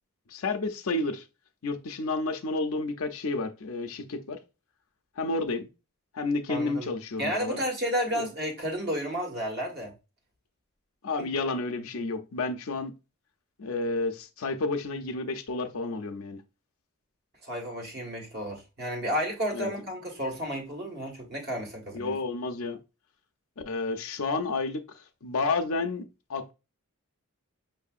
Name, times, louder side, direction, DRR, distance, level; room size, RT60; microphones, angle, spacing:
voice 1, 0.3-1.2 1.6-4.4 5.2-5.7 6.1-7.6 8.1-8.3 11.0-12.9 13.6-16.4 19.5-19.7 21.9-22.8 23.7-24.8 25.2-26.0 26.3-26.5, left 3 dB, 65° left, 0.6 m, -30 dB
voice 2, 6.5-6.9 7.2-9.9 11.2-11.3 17.4-22.1, equal, 45° right, 1.4 m, -32 dB
5.8 x 2.7 x 2.4 m
head